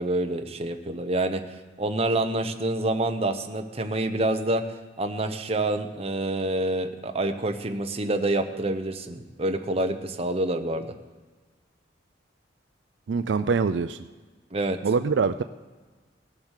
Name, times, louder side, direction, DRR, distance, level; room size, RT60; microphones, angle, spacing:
voice 1, 0.0-4.6 5.0-10.9 14.5-14.8, right 2 dB, 35° right, 6 dB, 0.9 m, -27 dB
voice 2, 13.1-14.0 14.8-15.4, right 5 dB, 75° right, 11 dB, 0.4 m, -24 dB
18.0 x 7.0 x 6.5 m, 1.4 s
head